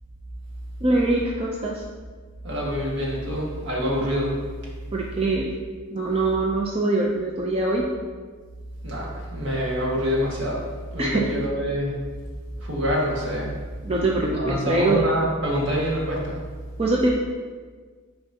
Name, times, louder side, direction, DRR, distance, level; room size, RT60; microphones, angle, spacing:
voice 1, 0.8-1.8 4.9-5.5 5.9-7.9 11.0-11.3 13.8-15.1 16.8-17.1, right 2 dB, 30° right, -2 dB, 0.5 m, -23 dB
voice 2, 2.4-4.3 8.8-10.6 10.9-12.0 12.6-13.5 14.4-16.4, equal, 60° right, -4 dB, 1.7 m, -26 dB
10.0 x 4.5 x 2.8 m, 1.5 s
head